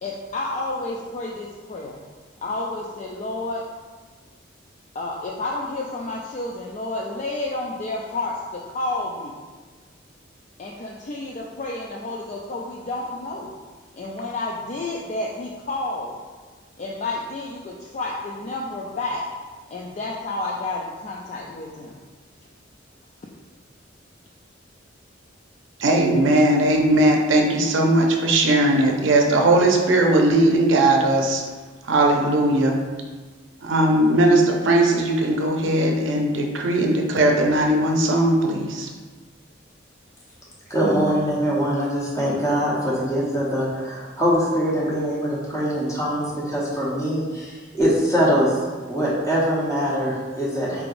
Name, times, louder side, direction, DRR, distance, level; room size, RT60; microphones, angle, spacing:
voice 1, 0.0-2.0 2.4-3.6 4.9-9.4 10.6-13.6 13.9-16.2 16.8-19.2 19.7-22.0, left 2 dB, 35° left, -3 dB, 0.3 m, -30 dB
voice 2, 25.8-31.4 31.9-32.8 33.6-38.9, right 1 dB, 75° right, 1 dB, 0.6 m, -18 dB
voice 3, 40.7-48.5 48.9-50.8, equal, 15° left, -7 dB, 1.0 m, -23 dB
4.7 x 3.3 x 2.5 m, 1.4 s
head